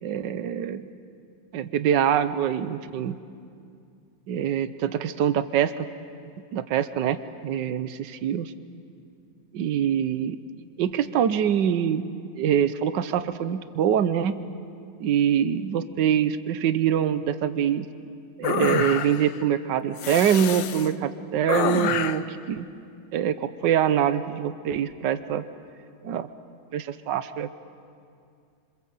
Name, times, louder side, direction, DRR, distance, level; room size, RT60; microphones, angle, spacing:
voice 1, 0.0-0.8 1.5-3.1 4.3-5.9 6.5-7.2 7.4-7.9 8.2-8.5 9.5-10.4 10.8-12.1 12.4-14.4 15.0-17.9 18.4-22.7 23.1-25.4 26.0-26.3 26.7-27.5, right 9 dB, 70° right, 12 dB, 1.5 m, -24 dB
Male Breathing Exhale Grunts, 18.4-19.4 20.0-20.9 21.5-22.3, left 9 dB, 75° left, 1.5 m, -28 dB
27.5 x 26.0 x 7.8 m, 2.4 s
omnidirectional pair, 2.1 m